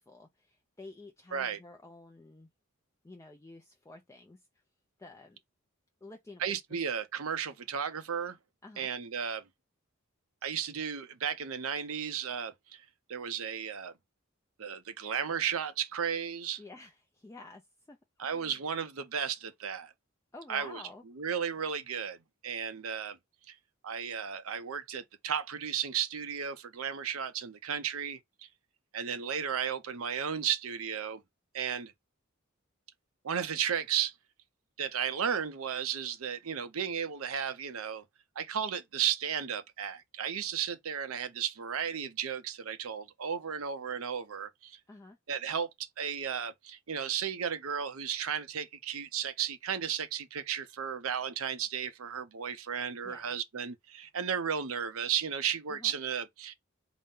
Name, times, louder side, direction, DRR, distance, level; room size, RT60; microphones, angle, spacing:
voice 1, 0.0-2.5 3.0-4.5 5.0-5.4 6.0-6.5 8.6-8.9 16.6-18.6 20.3-21.0 44.9-45.2 53.0-53.4 55.7-55.9, left 2 dB, 15° left, 0.4 m, -50 dB
voice 2, 6.4-8.4 8.8-9.4 10.4-13.9 14.6-16.6 18.2-19.9 20.5-20.8 21.2-22.2 22.4-23.2 23.5-23.6 23.8-28.2 28.9-31.2 31.5-31.9 33.2-34.1 34.8-38.0 38.4-44.8 45.3-56.5, right 8 dB, 85° right, 0.6 m, -34 dB
4.0 x 2.1 x 3.7 m
head